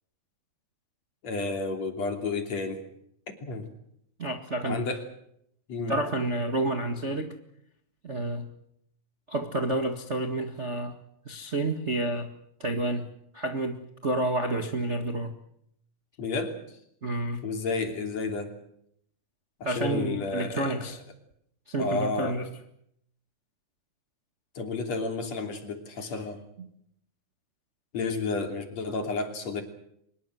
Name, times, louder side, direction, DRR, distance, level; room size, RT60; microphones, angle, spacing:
voice 1, 1.2-2.8 3.4-3.7 4.6-5.0 5.7-5.9 16.2-16.6 17.4-18.5 19.6-20.8 21.8-22.4 24.6-26.4 27.9-29.6, left 3 dB, 45° left, 5 dB, 3.9 m, -31 dB
voice 2, 4.2-4.8 5.9-7.3 8.0-8.5 9.3-11.0 11.2-12.3 12.6-15.3 17.0-17.4 19.6-21.0 21.7-22.5 26.6-26.7, right 2 dB, 70° right, 5 dB, 0.6 m, -29 dB
24.5 x 21.0 x 7.9 m, 0.72 s
omnidirectional pair, 4.5 m